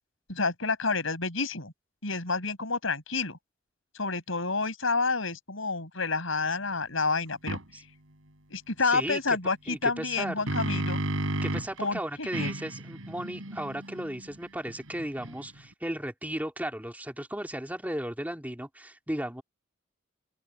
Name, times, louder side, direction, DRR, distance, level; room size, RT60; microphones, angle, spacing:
voice 1, 0.3-1.7 2.0-3.4 3.9-7.6 8.5-11.0 11.8-12.5, left 4 dB, 75° left, 5.5 m, -29 dB
sound 1, 7.5-7.6 10.0-11.8 12.3-15.7, right 1 dB, 85° right, 3.5 m, -33 dB
voice 2, 8.9-9.4 9.7-10.3 11.4-19.4, right 1 dB, 10° right, 2.5 m, -35 dB
open air
head